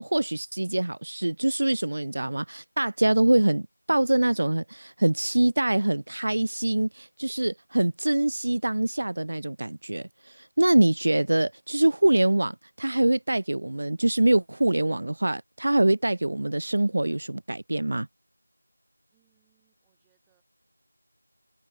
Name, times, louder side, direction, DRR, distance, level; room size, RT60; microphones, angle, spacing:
voice 1, 0.0-18.1, right 1 dB, 50° right, 0.3 m, -24 dB
voice 2, 19.1-20.4, right 34 dB, 5° right, 7.4 m, -72 dB
figure-of-eight pair, 175°, 0 cm